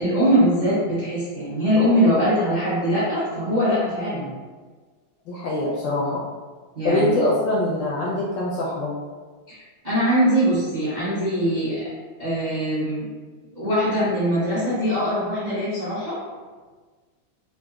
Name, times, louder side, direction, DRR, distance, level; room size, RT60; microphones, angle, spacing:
voice 1, 0.0-4.3 6.7-7.1 9.5-9.6 9.8-11.9 12.2-13.1 13.5-16.2, equal, 40° right, -11 dB, 0.6 m, -22 dB
voice 2, 5.3-6.2 6.8-8.9, left 1 dB, 75° left, -5 dB, 1.1 m, -23 dB
3.8 x 2.4 x 2.3 m, 1.4 s
omnidirectional pair, 2.3 m